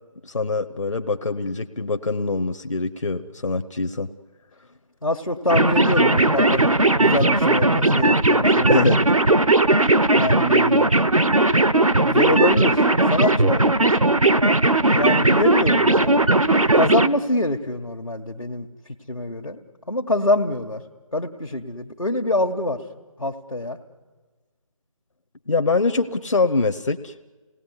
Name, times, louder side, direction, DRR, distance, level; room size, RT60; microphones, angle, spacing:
voice 1, 0.2-4.1 8.7-9.1 25.5-27.2, left 3 dB, 65° left, 7 dB, 1.0 m, -24 dB
voice 2, 5.0-8.9 10.1-10.9 12.1-12.8 13.1-13.6 14.9-16.2 16.7-18.7 19.1-19.6 19.9-20.8 21.1-22.8 23.2-23.8, left 2 dB, 85° left, -1 dB, 1.6 m, -25 dB
sound 1, 5.5-17.1, right 2 dB, 85° right, 0.9 m, -18 dB
27.0 x 18.5 x 9.7 m, 1.4 s
figure-of-eight pair, 155°, 17 cm